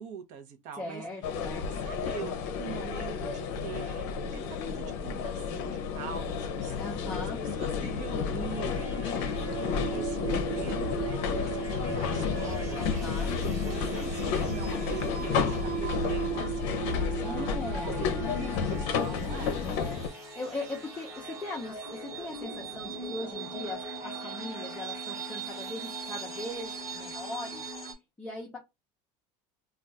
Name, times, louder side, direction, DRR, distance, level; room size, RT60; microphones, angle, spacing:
voice 1, 0.0-1.0 1.8-6.8 7.1-17.6 17.8-19.6, right 7 dB, 50° right, 0.7 m, -43 dB
voice 2, 0.8-1.7 6.8-7.4 12.7-13.3 17.2-18.1 19.6-27.6 28.2-28.6, left 2 dB, 10° left, 0.6 m, -39 dB
sound 1, 1.2-20.1, left 6 dB, 65° left, 0.6 m, -31 dB
sound 2, 8.5-27.9, right 6 dB, 20° right, 1.0 m, -38 dB
2.3 x 2.3 x 3.9 m
cardioid pair, 165°, 15 cm